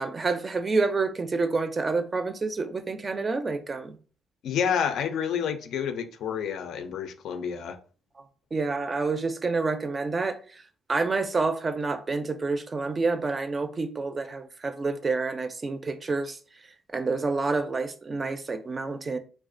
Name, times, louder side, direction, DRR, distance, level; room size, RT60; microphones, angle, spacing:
voice 1, 0.0-4.0 8.5-10.6 10.9-16.4 16.9-19.2, right 3 dB, 30° right, 0.3 m, -28 dB
voice 2, 4.4-7.8, left 7 dB, 70° left, 0.3 m, -29 dB
2.3 x 2.1 x 2.5 m
cardioid pair, 90°, 0 cm